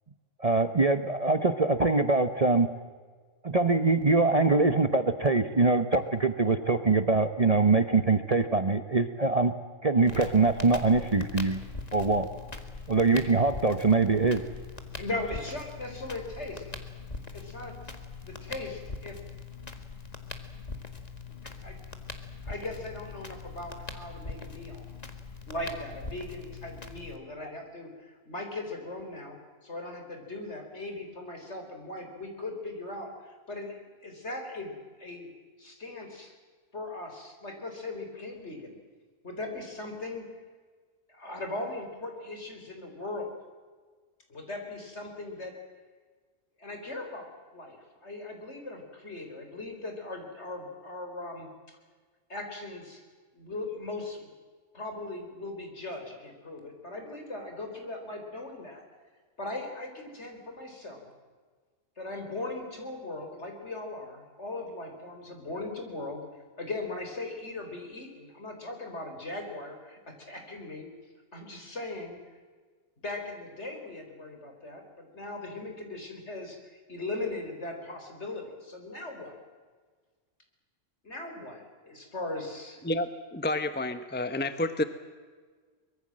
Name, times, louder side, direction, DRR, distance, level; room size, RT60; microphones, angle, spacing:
voice 1, 0.4-2.7 3.4-9.5 9.8-11.6 11.9-12.3 12.9-14.4 27.4-27.5, right 3 dB, 30° right, 9 dB, 1.0 m, -23 dB
Crackle, 10.0-27.2, left 4 dB, 30° left, 2.1 m, -42 dB
voice 2, 14.9-16.6 17.3-17.8 18.2-19.2 21.4-21.8 22.4-24.8 25.5-34.7 35.0-35.3 35.6-36.3 36.7-38.8 39.2-40.3 41.1-43.3 44.3-45.6 46.6-47.3 47.5-51.5 52.3-53.0 53.3-54.3 54.7-58.8 59.4-61.1 62.0-66.2 66.6-70.9 71.3-72.2 73.0-76.6 76.9-79.4 81.0-82.8, left 2 dB, 60° left, 4 dB, 4.6 m, -39 dB
voice 3, 82.8-84.8, left 2 dB, 10° left, 11 dB, 1.0 m, -30 dB
24.0 x 21.5 x 7.6 m, 1.5 s
omnidirectional pair, 1.3 m